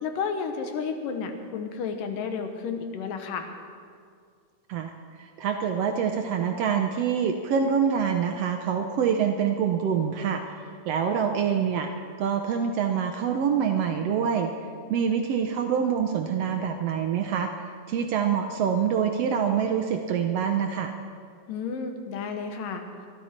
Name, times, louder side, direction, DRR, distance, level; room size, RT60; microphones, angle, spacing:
voice 1, 0.0-3.5 21.5-22.8, left 5 dB, 90° left, 6 dB, 2.9 m, -32 dB
voice 2, 5.2-10.5 10.9-11.9 12.2-14.5 14.9-17.5 17.9-20.9, right 7 dB, 75° right, 5 dB, 1.4 m, -25 dB
22.5 x 12.5 x 4.4 m, 2.2 s
omnidirectional pair, 3.7 m